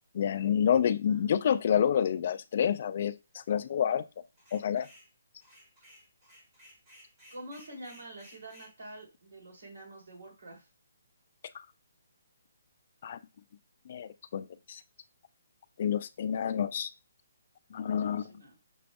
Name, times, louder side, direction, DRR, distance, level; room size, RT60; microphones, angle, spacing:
voice 1, 0.1-4.0 4.5-4.9 13.0-13.2 13.9-14.8 15.8-16.9 17.7-18.3, left 8 dB, 40° left, 12 dB, 0.3 m, -28 dB
sound 1, 4.4-5.1 5.4-8.7, equal, 15° right, 1.3 m, -57 dB
voice 2, 7.3-10.7 18.2-18.6, right 1 dB, 60° right, -1 dB, 2.6 m, -47 dB
6.0 x 2.4 x 3.5 m, 0.28 s
hypercardioid pair, 170°, 0 cm